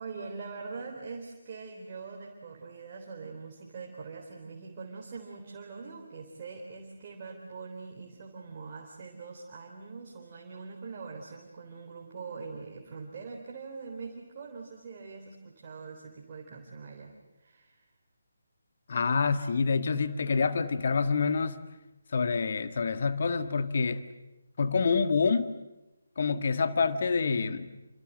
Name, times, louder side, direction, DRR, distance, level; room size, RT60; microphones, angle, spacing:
voice 1, 0.0-17.9, right 4 dB, 30° right, 0 dB, 3.9 m, -43 dB
voice 2, 18.9-21.6 22.1-24.0 24.6-25.5 26.2-27.7, left 5 dB, 45° left, 10 dB, 1.8 m, -27 dB
29.0 x 26.5 x 7.7 m, 0.99 s
figure-of-eight pair, 150°, 0 cm